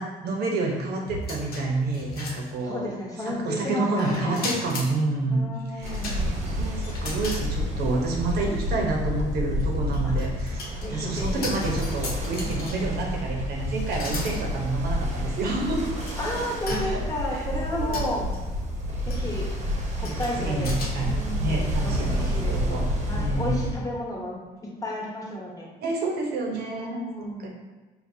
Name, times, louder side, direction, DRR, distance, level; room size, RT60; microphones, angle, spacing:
voice 1, 0.0-2.9 3.2-5.5 5.7-6.0 6.6-15.9 16.7-17.0 17.3-17.5 17.7-18.3 20.0-21.1 21.4-22.9 23.2-23.5 25.8-27.5, right 3 dB, 70° right, 0 dB, 0.9 m, -29 dB
sound 1, 1.1-2.9 4.0-4.9 5.8-7.5 7.9-8.0 9.5-13.0 13.9-14.4 15.1-15.2 15.8-16.1 16.7-17.2 17.9-18.4 19.1-19.3 20.0-20.9, left 2 dB, 65° left, 0.9 m, -36 dB
voice 2, 2.6-4.4 5.3-6.4 10.0-10.2 10.8-11.5 16.2-18.3 19.1-19.5 19.9-20.7 21.0-22.8 23.1-24.4 24.8-25.7 26.6-27.5, left 1 dB, 20° left, -3 dB, 1.1 m, -33 dB
Ocean, 5.8-23.7, equal, 45° right, 0.9 m, -29 dB
5.1 x 2.7 x 2.7 m, 1.2 s
cardioid pair, 110°, 17 cm